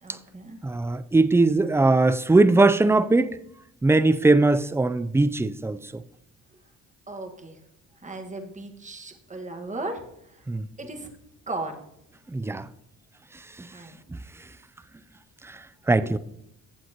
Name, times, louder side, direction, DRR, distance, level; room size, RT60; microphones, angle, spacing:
voice 1, 0.0-1.0 7.1-7.6 8.0-10.4 10.8-11.1 11.5-11.9 13.7-14.0, right 2 dB, 25° right, 1.6 m, -37 dB
voice 2, 0.6-3.3 3.8-6.0 10.5-10.6 12.3-12.6 15.9-16.2, right 2 dB, 10° right, 0.4 m, -20 dB
15.5 x 7.5 x 2.9 m
cardioid pair, 90°, 30 cm